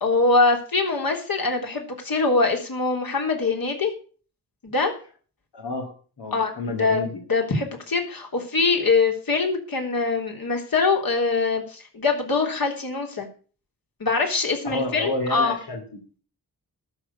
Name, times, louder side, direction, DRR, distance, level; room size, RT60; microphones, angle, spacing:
voice 1, 0.0-3.9 4.6-4.9 6.3-6.5 6.8-7.0 7.3-13.3 14.0-15.6, left 3 dB, 60° left, 3 dB, 3.5 m, -23 dB
voice 2, 5.5-7.2 14.6-16.0, left 2 dB, 80° left, 1 dB, 2.8 m, -30 dB
12.5 x 6.6 x 8.3 m, 0.40 s
cardioid pair, 55°, 39 cm